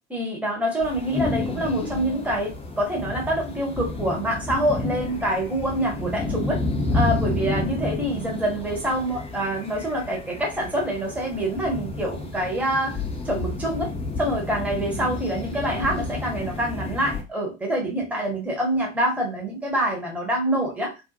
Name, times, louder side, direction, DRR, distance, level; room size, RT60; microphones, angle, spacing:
voice 1, 0.1-6.6 6.9-13.0 13.2-13.9 14.2-20.9, right 1 dB, 5° right, -1 dB, 0.9 m, -26 dB
sound 1, 0.8-17.2, left 2 dB, 15° left, 0.6 m, -30 dB
2.5 x 2.0 x 2.7 m, 0.26 s
figure-of-eight pair, 60°, 40 cm